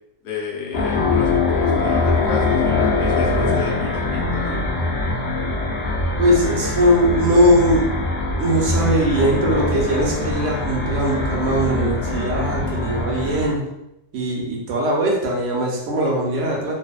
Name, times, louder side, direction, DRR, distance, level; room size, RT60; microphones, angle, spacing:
voice 1, 0.2-4.6, left 5 dB, 65° left, -2 dB, 0.8 m, -32 dB
sound 1, 0.7-13.6, left 3 dB, 80° left, 0.3 m, -22 dB
voice 2, 6.2-7.9 8.4-13.6 14.1-16.7, equal, 70° right, -1 dB, 1.0 m, -20 dB
2.6 x 2.0 x 2.3 m, 0.86 s
omnidirectional pair, 1.4 m